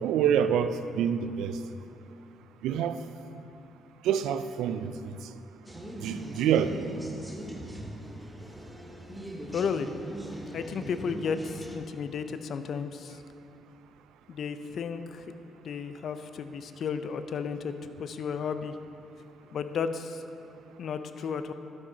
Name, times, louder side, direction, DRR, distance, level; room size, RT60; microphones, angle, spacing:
voice 1, 0.0-1.6 2.6-3.0 4.0-5.1 6.0-6.9, right 8 dB, 85° right, 11 dB, 0.3 m, -27 dB
sound 1, 5.6-11.8, right 1 dB, 5° right, 1.0 m, -41 dB
voice 2, 9.5-9.9 10.5-13.2 14.3-18.8 19.5-20.2 20.8-21.5, left 6 dB, 60° left, 10 dB, 0.4 m, -33 dB
11.5 x 6.0 x 3.9 m, 2.8 s
cardioid pair, 90°, 0 cm